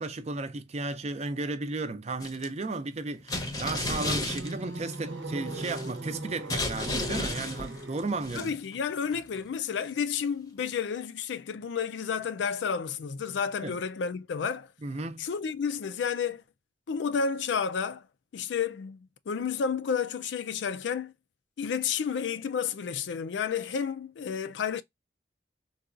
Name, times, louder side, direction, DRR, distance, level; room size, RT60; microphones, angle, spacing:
voice 1, 0.0-8.5 13.6-13.7 14.8-15.3, right 3 dB, 40° right, 0.5 m, -34 dB
sound 1, 2.2-2.5 3.3-4.9 5.4-6.1 6.5-8.8 9.1-9.4, left 2 dB, 20° left, 0.7 m, -33 dB
sound 2, 3.7-8.3, right 2 dB, 80° right, 0.8 m, -39 dB
voice 2, 8.3-14.7 15.2-16.4 16.9-18.0 18.3-21.1 21.6-24.8, left 6 dB, 80° left, 0.4 m, -31 dB
4.0 x 2.3 x 2.4 m
head